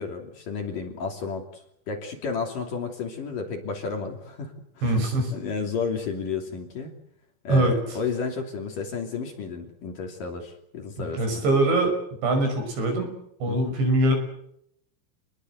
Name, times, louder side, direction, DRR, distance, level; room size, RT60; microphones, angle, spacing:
voice 1, 0.0-5.0 5.3-6.9 7.4-11.4 13.5-13.8, left 5 dB, 50° left, 3 dB, 4.2 m, -32 dB
voice 2, 4.8-5.3 7.5-7.8 11.0-11.9 12.2-13.1 13.4-14.1, right 2 dB, 65° right, 5 dB, 8.1 m, -22 dB
29.0 x 20.5 x 8.2 m, 0.74 s
omnidirectional pair, 5.5 m